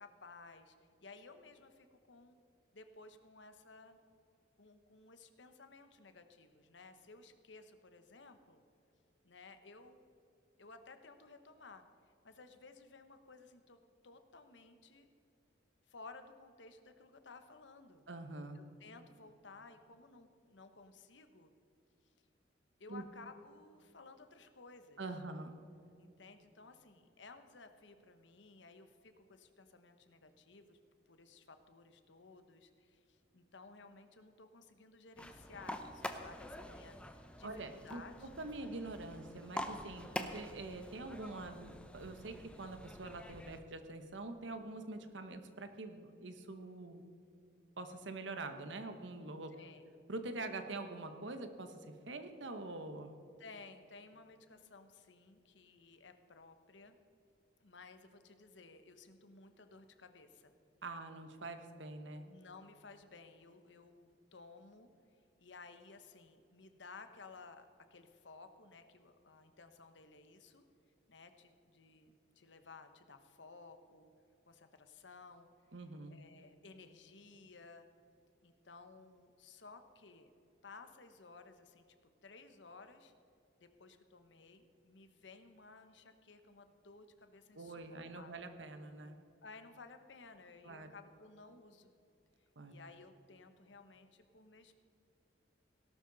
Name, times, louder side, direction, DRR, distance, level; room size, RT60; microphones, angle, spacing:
voice 1, 0.0-2.4 2.7-4.0 4.6-8.6 9.2-10.0 10.6-11.8 12.2-15.1 15.9-18.1 18.5-21.5 22.8-25.2 26.0-30.8 31.1-36.9 37.4-38.3 49.5-49.8 53.4-57.0 57.6-60.5 62.2-64.9 65.4-70.6 71.1-74.1 74.5-75.5 76.1-77.9 78.4-80.3 80.6-81.8 82.2-83.1 83.6-88.3 89.4-91.9 92.7-94.8, left 3 dB, 75° left, 8 dB, 1.1 m, -57 dB
voice 2, 18.1-18.6 22.9-23.1 25.0-25.5 37.4-47.0 47.8-49.6 50.1-53.1 60.8-62.3 75.7-76.2 87.5-89.2 90.6-90.9 92.6-92.7, right 2 dB, 80° right, 8 dB, 1.1 m, -45 dB
sound 1, 35.2-43.6, left 1 dB, 5° left, 0.6 m, -47 dB
17.5 x 12.0 x 4.1 m, 2.7 s
head